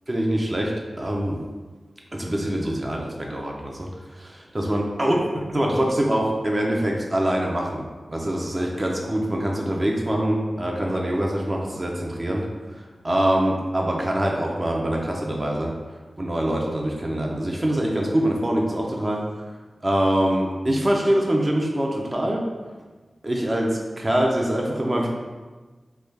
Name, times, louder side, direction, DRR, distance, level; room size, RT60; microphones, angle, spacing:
voice 1, 0.1-0.7 1.0-1.4 2.1-5.2 5.5-12.4 13.0-15.7 16.2-19.2 19.8-22.5 23.2-25.1, right 1 dB, 25° right, -1 dB, 0.4 m, -24 dB
3.1 x 2.2 x 3.2 m, 1.3 s
wide cardioid pair, 110°, 0 cm